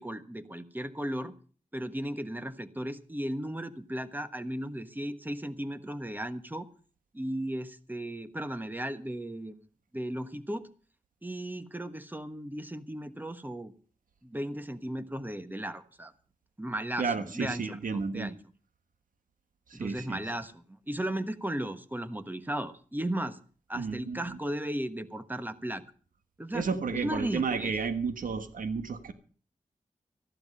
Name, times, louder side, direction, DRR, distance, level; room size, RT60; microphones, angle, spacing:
voice 1, 0.0-1.3 1.7-6.7 7.1-9.6 9.9-10.7 11.2-13.7 14.2-16.1 16.6-18.4 19.7-23.4 23.7-25.8 26.4-26.6 26.9-27.7, right 1 dB, 15° right, 11 dB, 1.3 m, -36 dB
voice 2, 17.0-18.3 19.7-20.2 23.8-24.4 26.5-29.1, right 5 dB, 90° right, 9 dB, 1.5 m, -32 dB
14.0 x 12.0 x 5.5 m, 0.42 s
cardioid pair, 50°, 14 cm